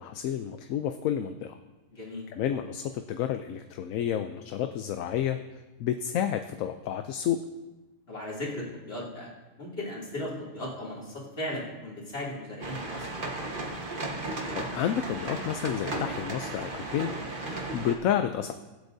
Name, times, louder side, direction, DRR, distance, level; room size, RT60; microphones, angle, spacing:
voice 1, 0.0-1.6 2.3-5.4 5.8-7.4 14.5-18.5, left 10 dB, 75° left, 8 dB, 0.9 m, -30 dB
voice 2, 1.9-2.3 8.1-9.3 9.6-13.1, left 1 dB, 45° left, -6 dB, 3.1 m, -36 dB
sound 1, 12.6-17.9, right 2 dB, 40° right, 1.4 m, -35 dB
23.0 x 8.1 x 2.7 m, 1.1 s
omnidirectional pair, 1.5 m